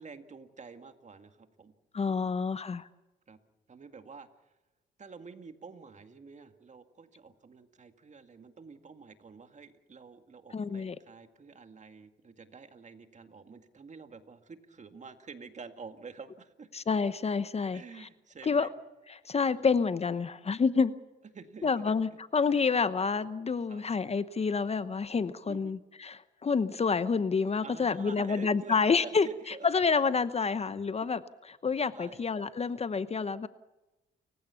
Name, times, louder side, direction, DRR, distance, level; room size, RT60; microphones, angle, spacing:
voice 1, 0.0-1.7 2.1-2.3 3.3-3.4 3.7-4.5 5.0-16.7 17.7-18.7 19.5-19.7 21.3-21.9 22.5-22.6 23.7-23.8 25.4-25.8 27.6-29.7 31.9-32.2, right 5 dB, 35° right, 8 dB, 2.0 m, -49 dB
voice 2, 1.9-2.9 10.5-11.0 16.7-18.1 18.4-18.7 19.1-21.0 21.6-31.2 31.6-33.5, left 5 dB, 30° left, 14 dB, 0.9 m, -28 dB
29.5 x 16.0 x 7.1 m, 1.0 s
cardioid pair, 90°, 20 cm